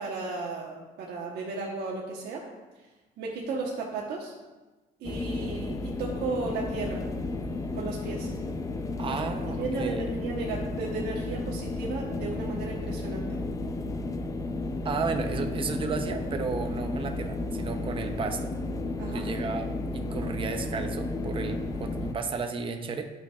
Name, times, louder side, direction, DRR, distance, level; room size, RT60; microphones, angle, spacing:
voice 1, 0.0-2.4 3.2-4.3 5.0-7.0 7.7-8.3 9.1-9.2 9.5-13.4 19.0-19.3, right 3 dB, 75° right, -2 dB, 1.2 m, -34 dB
sound 1, 5.0-22.1, left 2 dB, 20° left, 0.5 m, -33 dB
voice 2, 9.0-10.0 14.8-18.5 19.0-23.0, right 4 dB, 30° right, 5 dB, 0.7 m, -33 dB
11.5 x 6.0 x 2.4 m, 1.2 s
cardioid pair, 110°, 17 cm